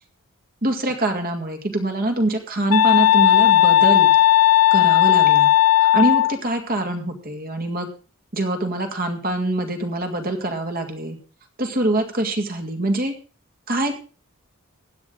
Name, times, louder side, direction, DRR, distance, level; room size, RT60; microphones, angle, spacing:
voice 1, 0.6-4.1 4.7-5.5 5.8-7.9 8.3-11.2 11.6-13.2 13.7-13.9, right 1 dB, 45° right, 5 dB, 2.0 m, -24 dB
sound 1, 2.7-6.3, left 12 dB, 80° left, 0.6 m, -15 dB
16.0 x 9.8 x 3.9 m, 0.36 s
head